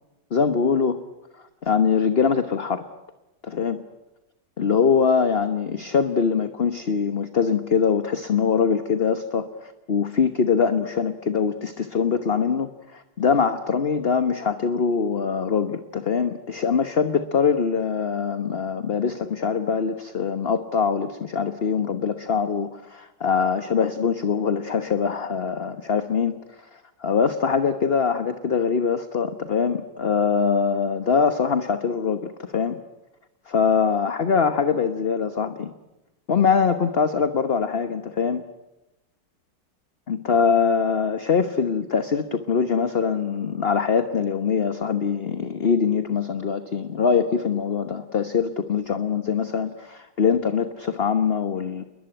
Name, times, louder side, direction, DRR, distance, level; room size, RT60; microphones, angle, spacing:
voice 1, 0.3-1.0 1.6-2.8 3.4-3.8 4.6-26.4 27.0-32.8 33.5-35.7 36.3-38.5 40.1-51.8, left 6 dB, 35° left, 9 dB, 1.2 m, -23 dB
28.5 x 22.0 x 9.0 m, 0.97 s
omnidirectional pair, 2.0 m